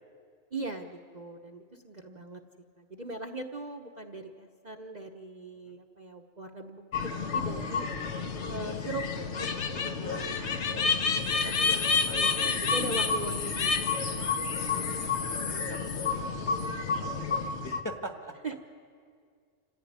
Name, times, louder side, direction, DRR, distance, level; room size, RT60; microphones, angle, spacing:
voice 1, 0.5-2.4 2.8-6.8 7.3-7.9 8.5-9.1 9.9-10.4 12.1-13.8 18.4-18.6, right 2 dB, 35° right, 2 dB, 1.0 m, -40 dB
sound 1, 6.9-17.8, left 5 dB, 60° left, 1.3 m, -29 dB
voice 2, 9.4-10.9 11.3-12.8 14.1-18.3, left 1 dB, 15° left, 4 dB, 1.4 m, -44 dB
27.0 x 15.0 x 9.4 m, 2.1 s
omnidirectional pair, 1.4 m